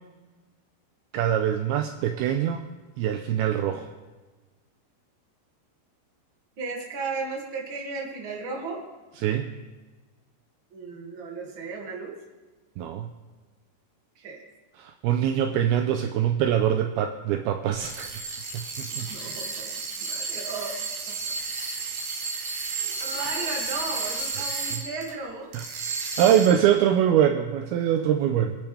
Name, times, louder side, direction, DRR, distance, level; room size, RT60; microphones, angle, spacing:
voice 1, 1.1-2.7 3.0-3.9 9.2-9.5 12.8-13.1 14.8-18.1 18.5-19.1 25.5-25.6 26.2-28.6, right 10 dB, 85° right, 5 dB, 2.2 m, -23 dB
voice 2, 6.6-8.8 10.7-12.2 14.2-14.4 18.9-19.7 20.0-20.7 22.7-25.5 26.6-26.8, right 4 dB, 35° right, -1 dB, 2.2 m, -35 dB
sound 1, 17.7-25.1 25.5-26.7, right 4 dB, 60° right, 3.2 m, -32 dB
26.0 x 10.0 x 3.4 m, 1.3 s
omnidirectional pair, 5.1 m